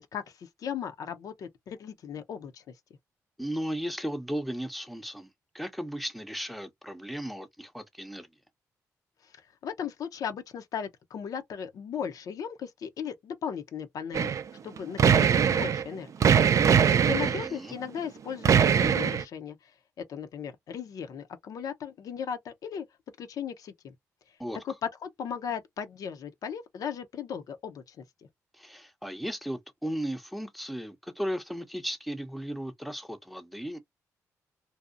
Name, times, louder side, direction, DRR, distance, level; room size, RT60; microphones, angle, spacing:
voice 1, 0.0-2.7 9.6-14.3 14.6-15.1 15.5-16.3 16.9-19.7 20.0-22.8 23.2-23.9 24.6-28.0, left 7 dB, 70° left, 0.5 m, -37 dB
voice 2, 3.4-5.3 5.5-8.3 17.1-17.8 24.4-24.6 28.5-33.8, equal, ahead, 0.6 m, -35 dB
sound 1, 14.1-14.4 14.8-15.8 16.2-17.5 18.4-19.2, right 7 dB, 55° right, 0.4 m, -21 dB
2.7 x 2.0 x 2.3 m
cardioid pair, 65°, 6 cm